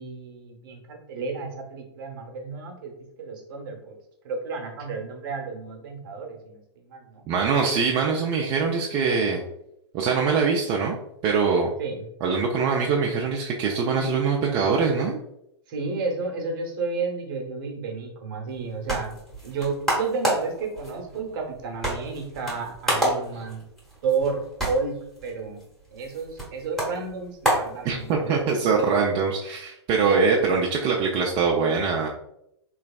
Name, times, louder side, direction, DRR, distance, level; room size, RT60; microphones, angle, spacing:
voice 1, 0.0-4.0 4.2-7.3 11.8-12.1 15.7-19.2 19.4-23.6 24.0-25.6 25.9-28.7, right 4 dB, 50° right, 2 dB, 0.9 m, -32 dB
voice 2, 7.3-9.4 9.9-11.0 11.2-11.7 12.2-15.2 27.8-32.1, right 5 dB, 30° right, -2 dB, 0.4 m, -23 dB
sound 1, 18.5-28.4, right 1 dB, ahead, 1.1 m, -30 dB
3.2 x 3.0 x 2.3 m, 0.81 s
hypercardioid pair, 110°, 15 cm